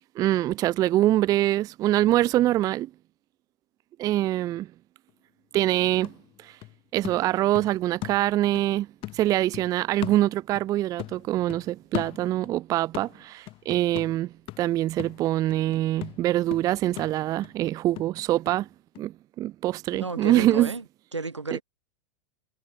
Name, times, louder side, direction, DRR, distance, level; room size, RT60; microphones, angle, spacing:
voice 1, 0.2-2.9 4.0-4.7 5.5-6.1 6.4-6.6 6.9-8.9 9.1-18.7 19.0-20.7 21.5-21.6, right 14 dB, 25° right, 0.3 m, -24 dB
sound 1, 5.1-5.2 5.5-8.7 9.0-10.7 11.0-12.6 12.9-18.6 18.9-19.0, left 18 dB, 40° left, 3.0 m, -39 dB
voice 2, 19.9-20.8 21.1-21.6, right 3 dB, 85° right, 2.8 m, -32 dB
figure-of-eight pair, 95°, 15 cm